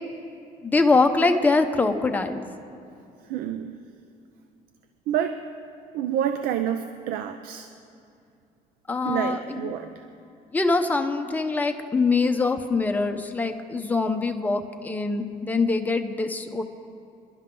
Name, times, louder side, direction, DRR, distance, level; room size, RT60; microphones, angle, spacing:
voice 1, 0.6-2.4 8.9-9.7 10.5-16.6, left 3 dB, 10° left, 5 dB, 0.8 m, -23 dB
voice 2, 3.3-3.8 5.1-5.4 5.9-7.7 9.0-9.9, right 10 dB, 85° right, 8 dB, 0.6 m, -28 dB
28.0 x 11.5 x 3.9 m, 2.5 s
cardioid pair, 155°, 15 cm